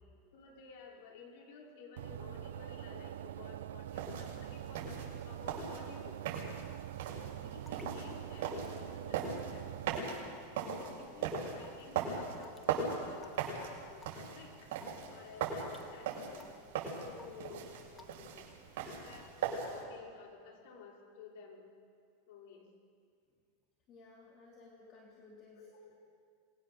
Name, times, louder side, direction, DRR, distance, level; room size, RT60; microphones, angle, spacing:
voice 1, 0.3-6.2 7.4-9.7 10.5-14.7 15.1-16.5 17.0-18.4 18.8-21.6 22.3-22.7 24.9-25.0 25.6-25.9, left 5 dB, 60° left, 0 dB, 5.4 m, -53 dB
sound 1, 2.0-10.0, right 12 dB, 85° right, 0.7 m, -44 dB
sound 2, 3.9-19.8, right 6 dB, 60° right, 6.8 m, -40 dB
Raindrop / Water tap faucet / Drip, 7.7-7.9 8.5-8.7 9.3-9.5 10.0-10.4 10.8-11.0 11.6-11.8 12.4-12.6 13.2-13.4 14.0-14.3 14.8-15.0 15.6-15.9 16.4-16.7 17.2-17.5 18.0-18.2, left 4 dB, 15° left, 1.5 m, -55 dB
voice 2, 23.9-25.7, left 3 dB, 35° left, -1 dB, 3.4 m, -57 dB
27.5 x 21.0 x 7.0 m, 2.2 s
supercardioid pair, 150°, 0 cm